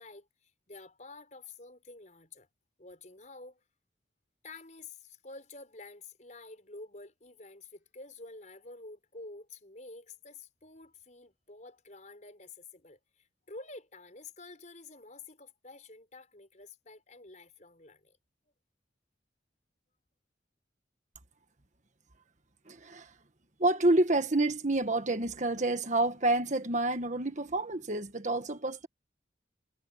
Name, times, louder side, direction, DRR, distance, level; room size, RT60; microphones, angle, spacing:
voice 1, 0.0-2.5 2.8-3.6 4.4-18.2, left 3 dB, 40° left, 5.5 m, -49 dB
voice 2, 22.7-23.1 23.6-28.9, right 2 dB, 40° right, 1.5 m, -28 dB
head